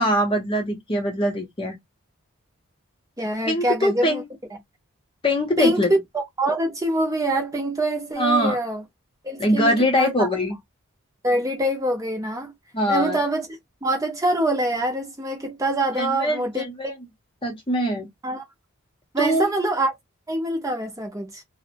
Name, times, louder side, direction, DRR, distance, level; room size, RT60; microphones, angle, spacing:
voice 1, 0.0-1.8 3.5-4.2 5.2-5.9 8.2-8.6 9.4-10.6 12.7-13.2 16.0-16.9 17.4-18.1 19.2-19.5, equal, 25° left, 0.6 m, -22 dB
voice 2, 3.2-4.2 5.6-6.0 6.4-8.8 9.2-10.3 11.2-12.5 12.9-13.5 13.8-16.6 18.2-18.4 19.1-19.9 20.3-21.4, right 1 dB, 15° right, 0.6 m, -24 dB
2.5 x 2.0 x 2.8 m
head